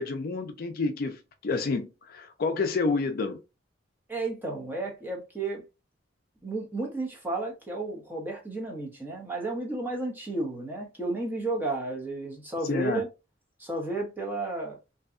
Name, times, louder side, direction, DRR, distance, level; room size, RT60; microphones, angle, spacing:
voice 1, 0.0-3.4 12.7-13.0, left 3 dB, 50° left, 0.4 m, -29 dB
voice 2, 4.1-5.6 6.4-13.1 13.6-14.8, right 2 dB, 10° right, 0.8 m, -32 dB
2.7 x 2.2 x 2.4 m
head